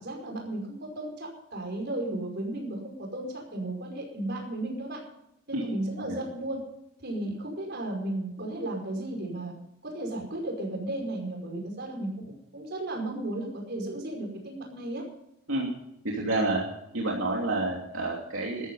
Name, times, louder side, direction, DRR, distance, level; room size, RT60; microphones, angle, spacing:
voice 1, 0.0-5.0 5.5-6.6 7.0-9.5 9.8-15.0, right 1 dB, 55° right, 1 dB, 5.2 m, -34 dB
voice 2, 16.0-16.6 16.9-18.7, right 2 dB, 75° right, -2 dB, 2.9 m, -29 dB
13.5 x 13.5 x 5.6 m, 0.82 s
head